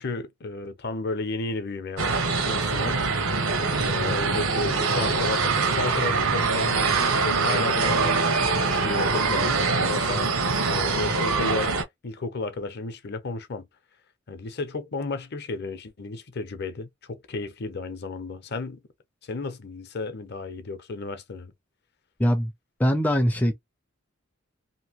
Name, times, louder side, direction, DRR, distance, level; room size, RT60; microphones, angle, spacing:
voice 1, 0.0-3.0 3.8-10.3 10.7-11.7 12.0-13.6 14.3-18.8 19.2-21.5, left 3 dB, 55° left, 0.7 m, -33 dB
sound 1, 2.0-11.8, right 4 dB, 90° right, 0.9 m, -24 dB
voice 2, 22.2-22.5 22.8-23.5, equal, 10° left, 0.4 m, -22 dB
2.9 x 2.5 x 2.9 m
head